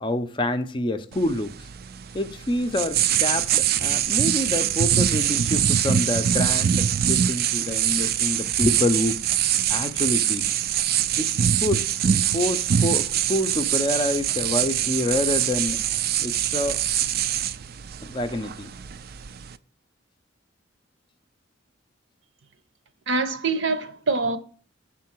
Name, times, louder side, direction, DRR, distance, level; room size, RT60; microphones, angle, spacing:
voice 1, 0.0-1.7 2.1-10.4 11.2-11.3 11.6-11.9 12.3-15.8 16.2-16.8 18.0-18.7, left 1 dB, 25° left, 0.5 m, -27 dB
sound 1, 1.1-19.6, right 9 dB, 50° right, 0.4 m, -24 dB
voice 2, 23.1-24.4, right 3 dB, 70° right, 0.8 m, -24 dB
7.3 x 3.8 x 5.9 m
head